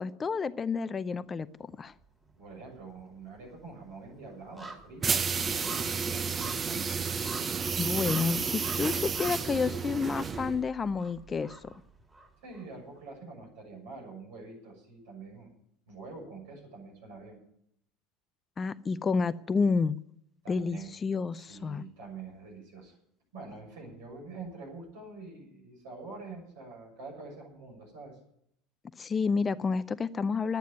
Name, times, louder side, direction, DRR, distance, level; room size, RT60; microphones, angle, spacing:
voice 1, 0.0-1.9 7.8-11.7 18.6-20.0 20.5-21.8 29.0-30.6, left 5 dB, 25° left, 16 dB, 0.5 m, -30 dB
sound 1, 1.6-2.4 2.7-12.6 13.0-13.1, right 2 dB, 10° right, 3.2 m, -48 dB
voice 2, 2.4-6.9 12.4-15.5 15.9-17.4 20.4-20.9 21.3-23.0 23.3-28.2, right 3 dB, 65° right, 0 dB, 6.8 m, -46 dB
sound 2, 5.0-10.6, right 5 dB, 25° right, 0.8 m, -31 dB
11.5 x 9.3 x 9.7 m, 0.72 s
figure-of-eight pair, 70°, 0 cm